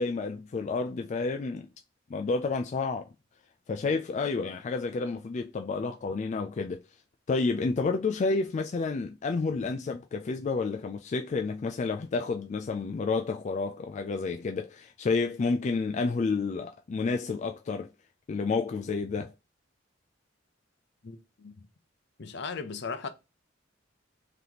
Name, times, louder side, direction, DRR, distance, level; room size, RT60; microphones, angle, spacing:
voice 1, 0.0-1.7 2.1-3.1 3.7-6.8 7.3-17.9 18.3-19.3, left 4 dB, 40° left, 0.3 m, -30 dB
voice 2, 21.0-21.7 22.2-23.1, left 5 dB, 65° left, 0.7 m, -37 dB
3.9 x 3.3 x 2.9 m
head